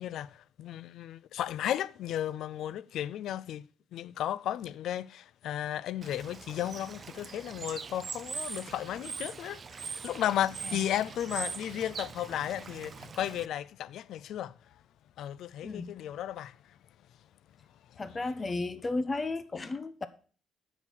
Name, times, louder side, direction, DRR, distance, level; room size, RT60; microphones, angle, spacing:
voice 1, 0.0-3.7 3.9-14.5 15.2-16.6, left 11 dB, 80° left, 0.4 m, -34 dB
Bird / Water, 6.0-13.5, right 5 dB, 40° right, 0.5 m, -42 dB
voice 2, 18.0-20.1, left 3 dB, 30° left, 1.1 m, -33 dB
9.0 x 6.3 x 6.3 m
cardioid pair, 90°, 0 cm